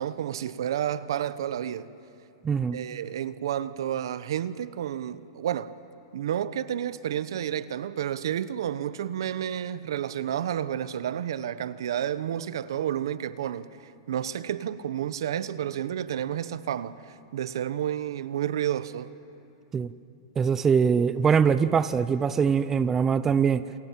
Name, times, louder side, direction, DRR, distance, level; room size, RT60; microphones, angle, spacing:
voice 1, 0.0-1.9 2.7-5.7 6.1-19.1, right 10 dB, 80° right, 0.9 m, -31 dB
voice 2, 2.4-2.8 19.7-19.9 20.4-23.6, right 6 dB, 15° right, 0.5 m, -22 dB
28.0 x 21.5 x 7.5 m
supercardioid pair, 155°, 2 cm